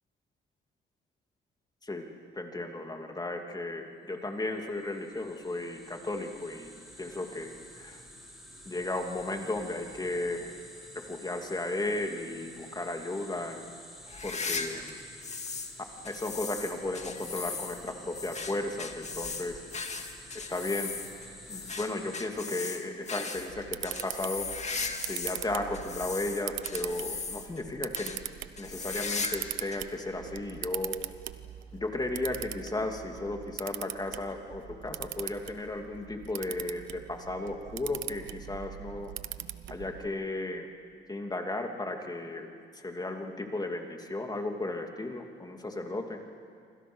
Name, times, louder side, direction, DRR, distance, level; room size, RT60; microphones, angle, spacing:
voice 1, 2.3-6.7 7.0-8.0 8.7-10.6 10.9-13.6 14.2-15.0 16.0-19.6 20.3-20.9 21.5-24.5 25.0-28.2 28.6-31.0 31.7-39.1 39.7-40.7 41.1-42.5 42.7-46.2, left 2 dB, 20° left, 3 dB, 2.8 m, -35 dB
sound 1, 4.5-22.2, equal, ahead, 6.5 m, -50 dB
sound 2, 14.1-15.7 16.0-25.4 25.7-27.6 27.9-28.2 28.6-29.5 29.7-29.8 30.6-30.7 31.9-32.0, left 4 dB, 35° left, 2.2 m, -37 dB
Camera, 23.4-40.1, right 12 dB, 75° right, 0.9 m, -41 dB
27.5 x 26.0 x 6.4 m, 2.3 s
cardioid pair, 90°, 20 cm